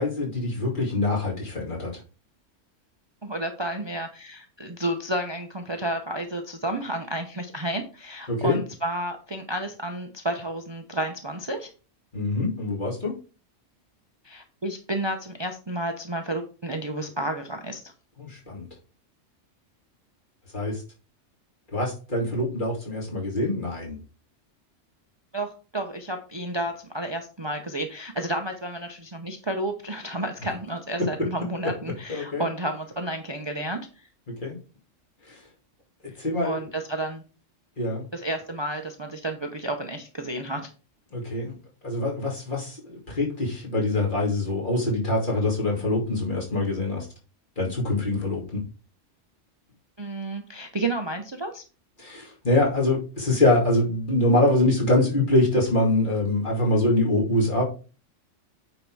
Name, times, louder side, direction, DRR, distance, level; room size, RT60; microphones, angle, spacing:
voice 1, 0.0-1.9 8.3-8.6 12.1-13.1 18.2-18.7 20.5-20.8 21.7-24.0 32.1-32.4 34.4-34.6 35.3-35.4 36.2-36.6 37.8-38.1 41.1-41.6 41.8-47.1 47.6-48.6 52.0-57.6, left 2 dB, 40° left, -3 dB, 2.7 m, -24 dB
voice 2, 3.2-11.7 14.2-17.9 25.3-34.1 36.4-37.2 38.1-40.7 50.0-51.6, right 1 dB, 25° right, 4 dB, 0.7 m, -31 dB
9.0 x 4.0 x 4.7 m, 0.35 s
omnidirectional pair, 1.3 m